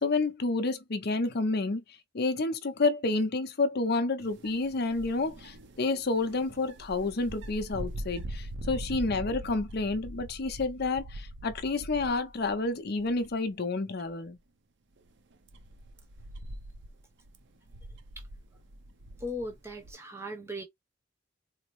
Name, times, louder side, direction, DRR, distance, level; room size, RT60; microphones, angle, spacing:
voice 1, 0.0-1.8 2.1-14.4, left 3 dB, 50° left, 0.6 m, -29 dB
sound 1, 4.2-12.7 13.0-13.5 14.0-14.1 15.0-19.9, right 1 dB, 60° right, 0.5 m, -43 dB
voice 2, 19.2-20.6, left 1 dB, 15° right, 0.8 m, -37 dB
4.0 x 2.0 x 3.0 m
head